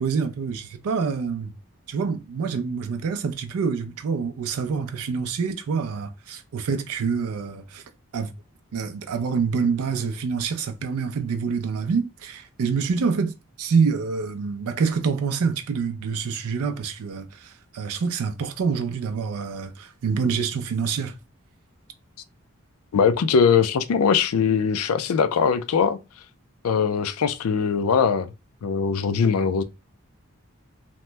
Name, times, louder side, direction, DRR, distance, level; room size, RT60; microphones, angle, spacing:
voice 1, 0.0-1.5 1.9-7.8 8.1-8.3 8.7-21.1, right 5 dB, 85° right, 0.4 m, -26 dB
voice 2, 22.9-26.0 26.6-28.3 28.6-29.6, left 6 dB, 80° left, 0.4 m, -21 dB
2.9 x 2.0 x 3.2 m
head